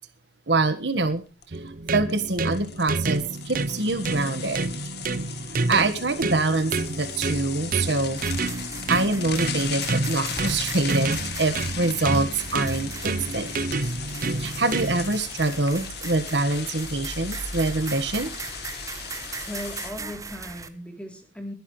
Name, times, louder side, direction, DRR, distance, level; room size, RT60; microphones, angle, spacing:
voice 1, 0.5-1.2 1.5-1.6 1.9-4.7 5.7-8.2 8.9-13.5 14.4-18.3, right 2 dB, 60° right, 11 dB, 1.5 m, -25 dB
sound 1, 1.0-1.1 1.4-1.6 2.1-19.9, left 8 dB, 55° left, 2.4 m, -37 dB
sound 2, 1.5-15.2, right 3 dB, 45° right, 0.7 m, -29 dB
sound 3, 8.2-20.7, right 3 dB, 15° right, 1.1 m, -38 dB
voice 2, 19.4-21.5, left 1 dB, 5° left, 4 dB, 3.3 m, -37 dB
22.0 x 11.5 x 3.2 m, 0.32 s
head